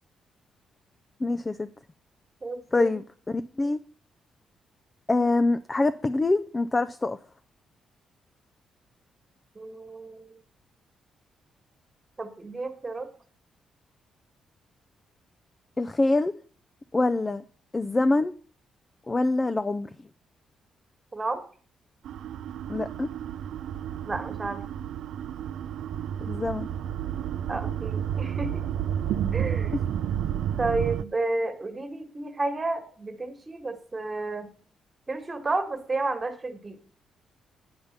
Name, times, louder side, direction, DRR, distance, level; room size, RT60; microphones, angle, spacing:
voice 1, 1.2-1.7 2.7-3.8 5.1-7.2 15.8-16.3 16.9-17.4 17.7-18.3 19.1-20.1 22.7-23.1 26.3-26.7, left 2 dB, 20° left, 11 dB, 0.4 m, -25 dB
voice 2, 2.4-3.0 9.5-10.3 12.2-13.1 21.1-21.4 24.0-24.6 27.5-28.6 29.3-29.7 30.6-34.5 35.1-36.8, right 2 dB, 20° right, 7 dB, 1.6 m, -31 dB
sound 1, 22.0-31.0, right 9 dB, 75° right, 0.4 m, -31 dB
9.6 x 5.5 x 7.2 m, 0.43 s
cardioid pair, 130°, 0 cm